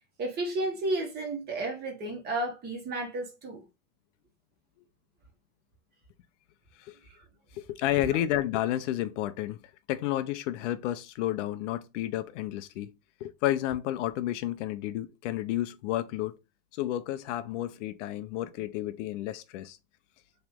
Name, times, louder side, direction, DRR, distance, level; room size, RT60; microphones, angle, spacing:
voice 1, 0.2-3.6, right 2 dB, 25° right, 1.3 m, -32 dB
voice 2, 7.5-9.6 9.9-12.9 13.2-16.4 16.7-19.8, left 13 dB, 65° left, 0.6 m, -31 dB
3.2 x 2.9 x 3.6 m
supercardioid pair, 145°, 39 cm